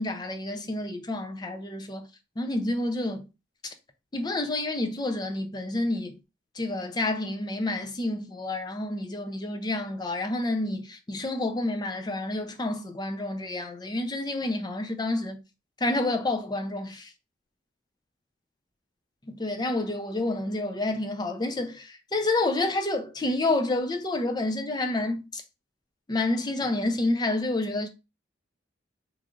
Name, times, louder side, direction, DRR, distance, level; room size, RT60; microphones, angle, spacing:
voice 1, 0.0-2.1 2.4-3.3 3.6-3.7 4.1-6.2 6.6-15.4 15.8-17.1 19.3-25.4 26.1-27.9, left 2 dB, 20° left, 0.5 m, -29 dB
3.0 x 2.4 x 3.7 m
head